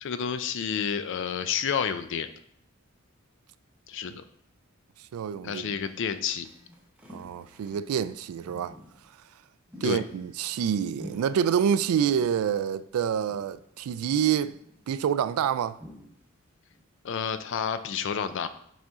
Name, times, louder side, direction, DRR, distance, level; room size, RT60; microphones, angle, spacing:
voice 1, 0.0-2.3 3.9-4.2 5.4-6.5 9.8-10.0 17.0-18.5, left 7 dB, 60° left, 0.4 m, -30 dB
voice 2, 5.1-5.7 7.1-8.8 9.8-14.5 14.9-15.8, right 8 dB, 85° right, 0.3 m, -27 dB
Telephone, 5.7-6.8 7.7-8.8 9.7-10.8, left 1 dB, 10° left, 1.3 m, -60 dB
sound 1, 6.3-8.0 8.4-9.1 9.7-10.7 11.0-11.8 12.2-12.7 13.3-13.8 14.5-14.9 15.8-16.4 16.7-16.9, left 1 dB, 5° right, 1.0 m, -48 dB
6.2 x 4.3 x 3.6 m
head